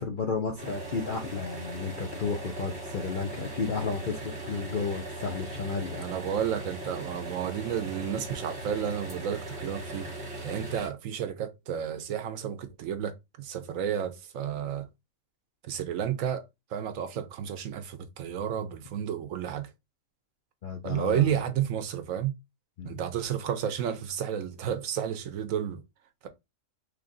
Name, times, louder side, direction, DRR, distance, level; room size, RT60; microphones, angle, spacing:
voice 1, 0.0-6.1 20.6-21.4 22.8-23.0, left 5 dB, 55° left, 0.6 m, -32 dB
sound 1, 0.6-10.9, right 2 dB, 50° right, 1.6 m, -39 dB
voice 2, 5.9-10.1 10.4-14.9 15.6-16.4 16.7-19.7 20.8-22.3 22.8-25.8 26.2-26.3, right 9 dB, 70° right, 1.0 m, -31 dB
3.3 x 2.5 x 3.7 m
omnidirectional pair, 1.5 m